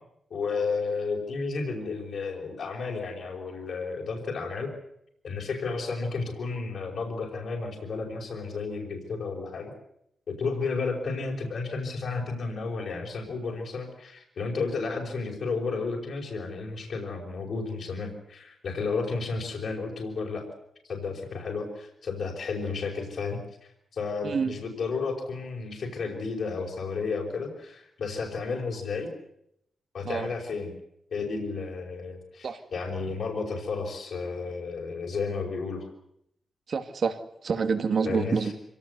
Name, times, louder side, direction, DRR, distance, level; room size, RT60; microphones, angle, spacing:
voice 1, 0.3-4.7 5.2-9.7 10.3-20.4 20.8-29.1 29.9-30.7 31.1-35.9 38.0-38.5, left 4 dB, 60° left, -3 dB, 5.0 m, -32 dB
voice 2, 24.2-24.5 30.0-30.3 32.4-32.6 36.7-37.2 37.4-38.5, right 5 dB, 50° right, 8 dB, 2.2 m, -27 dB
26.0 x 18.0 x 8.1 m, 0.76 s
wide cardioid pair, 155°, 0 cm